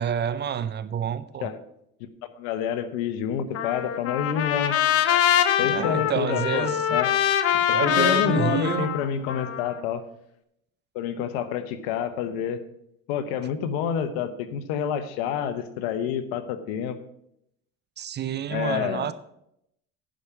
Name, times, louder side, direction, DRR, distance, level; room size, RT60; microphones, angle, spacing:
voice 1, 0.0-1.5 5.6-7.0 7.5-9.0 18.0-19.1, right 9 dB, 35° right, 0.6 m, -28 dB
voice 2, 2.4-4.8 5.6-7.1 7.7-10.0 10.9-12.6 13.1-17.0 18.5-19.1, left 8 dB, 85° left, 1.0 m, -28 dB
Trumpet, 3.5-9.8, left 10 dB, 55° left, 0.9 m, -24 dB
10.5 x 5.1 x 7.2 m
supercardioid pair, 95°, 29 cm